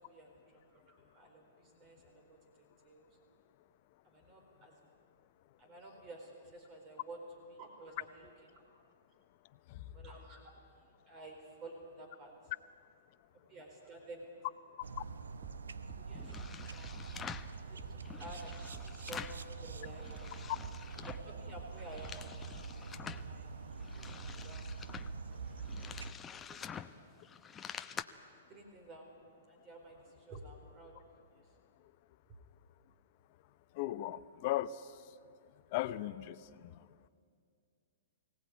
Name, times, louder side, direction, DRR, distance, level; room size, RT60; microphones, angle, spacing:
voice 1, 0.1-3.1 4.0-4.9 5.6-7.2 7.5-8.3 9.9-10.4 11.1-12.5 13.5-14.3 16.0-17.3 17.6-20.1 21.2-22.1 23.0-23.6 23.8-24.9 25.7-25.9 26.3-26.9 28.5-29.2 29.5-31.0, right 2 dB, 35° right, 3 dB, 4.3 m, -52 dB
sound 1, 14.8-26.1, right 4 dB, 85° right, 0.9 m, -45 dB
sound 2, 15.4-20.4 20.6-22.9, right 5 dB, 15° right, 1.3 m, -53 dB
sound 3, 16.1-17.5 18.0-19.5 19.8-21.3 21.7-23.3 23.7-28.0, left 7 dB, 20° left, 0.8 m, -47 dB
voice 2, 33.8-34.8 35.7-36.4, left 14 dB, 45° left, 14 dB, 0.8 m, -36 dB
23.5 x 17.5 x 9.4 m, 2.3 s
hypercardioid pair, 130°, 0 cm